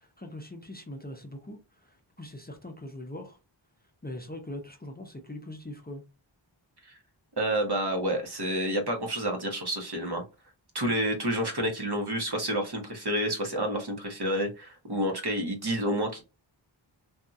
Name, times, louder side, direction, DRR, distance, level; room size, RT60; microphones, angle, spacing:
voice 1, 0.0-3.4 4.0-6.0, left 1 dB, 20° left, 0.6 m, -42 dB
voice 2, 7.4-10.2 10.7-16.2, equal, 55° right, 1.0 m, -29 dB
2.8 x 2.6 x 2.3 m
wide cardioid pair, 40°, 47 cm